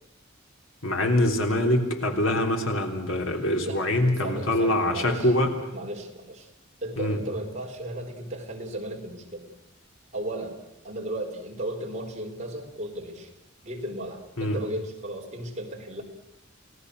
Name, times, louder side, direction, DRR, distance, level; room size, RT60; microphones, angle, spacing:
voice 1, 0.8-5.5 7.0-7.2 14.4-14.6, left 1 dB, 75° left, 3 dB, 3.4 m, -24 dB
voice 2, 4.2-5.3 5.7-6.5 6.8-9.5 10.1-10.6 10.8-13.3 13.6-16.0, right 1 dB, 35° right, 1 dB, 4.3 m, -35 dB
29.5 x 18.0 x 6.5 m, 0.88 s
head